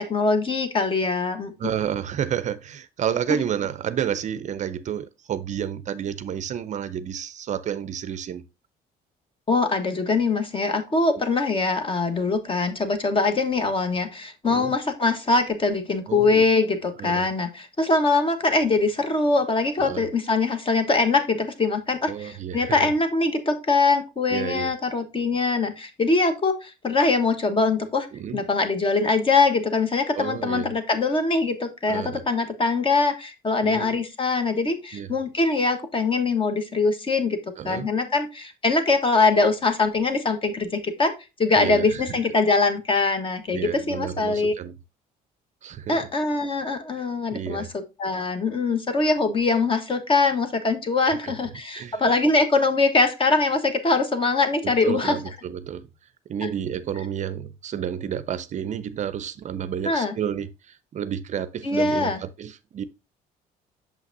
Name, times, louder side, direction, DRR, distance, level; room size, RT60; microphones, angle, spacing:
voice 1, 0.0-1.5 9.5-28.1 28.3-37.4 37.6-41.1 41.4-44.5 45.9-55.2 56.4-56.5 59.9-60.1 61.6-62.2, left 3 dB, 30° left, 1.3 m, -23 dB
voice 2, 1.6-8.4 14.4-14.7 16.1-16.5 17.0-17.3 19.8-20.1 22.1-22.9 24.3-24.7 28.1-28.4 30.2-30.7 31.9-32.2 33.6-34.0 34.9-35.1 37.6-37.9 41.6-42.2 43.5-44.7 45.6-46.1 46.9-47.7 51.0-51.3 51.7-52.0 54.6-55.9 56.3-62.8, right 9 dB, 45° right, 0.5 m, -31 dB
6.5 x 5.6 x 2.6 m
cardioid pair, 110°, 17 cm